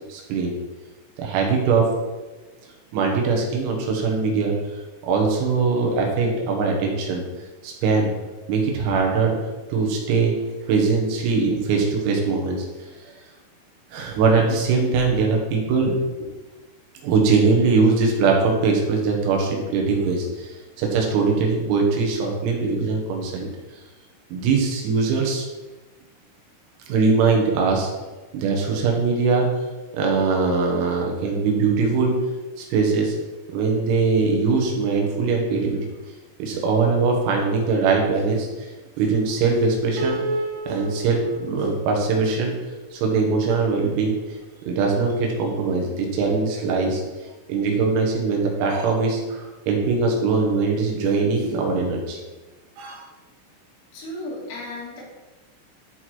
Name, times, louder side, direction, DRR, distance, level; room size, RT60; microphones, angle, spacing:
voice 1, 0.1-0.6 1.2-1.8 2.9-4.5 5.0-7.2 7.6-8.1 8.5-9.4 9.7-10.3 10.7-12.6 13.9-15.9 16.2-16.3 17.0-20.5 20.8-23.5 24.3-25.5 26.9-27.9 28.3-29.5 29.9-32.1 32.6-33.1 33.5-35.8 36.4-38.5 39.0-40.2 40.7-42.5 42.9-44.2 44.6-47.0 47.5-52.2 52.8-53.0, right 4 dB, 90° right, 0 dB, 4.3 m, -21 dB
Piano, 40.0-43.2, right 1 dB, 70° right, 2.6 m, -31 dB
voice 2, 53.9-55.0, left 1 dB, 70° left, -5 dB, 5.2 m, -34 dB
13.0 x 4.7 x 4.4 m, 1.2 s
omnidirectional pair, 5.9 m